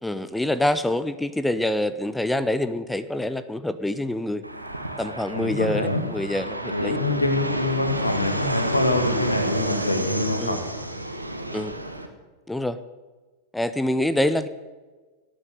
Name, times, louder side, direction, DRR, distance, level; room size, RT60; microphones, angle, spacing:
voice 1, 0.0-4.4 5.0-7.0 10.4-10.6 11.5-11.8 12.5-12.8 13.5-14.5, left 1 dB, 5° left, 13 dB, 0.7 m, -26 dB
Fixed-wing aircraft airplane, 4.4-12.1, right 1 dB, 85° right, 1.5 m, -30 dB
voice 2, 5.3-6.0 6.7-10.7, left 2 dB, 85° left, 7 dB, 1.9 m, -25 dB
17.5 x 8.6 x 7.9 m, 1.3 s
figure-of-eight pair, 90°, 0 cm